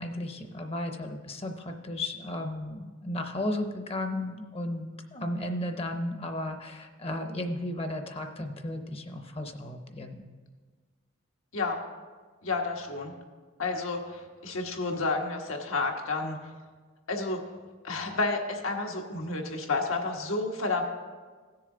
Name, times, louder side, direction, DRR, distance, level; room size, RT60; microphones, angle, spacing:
voice 1, 0.0-10.2, left 1 dB, 30° left, 6 dB, 0.7 m, -34 dB
voice 2, 12.4-13.1 13.6-16.4 17.1-17.4 17.8-20.8, left 3 dB, 90° left, 1 dB, 1.4 m, -30 dB
16.5 x 6.8 x 3.8 m, 1.5 s
head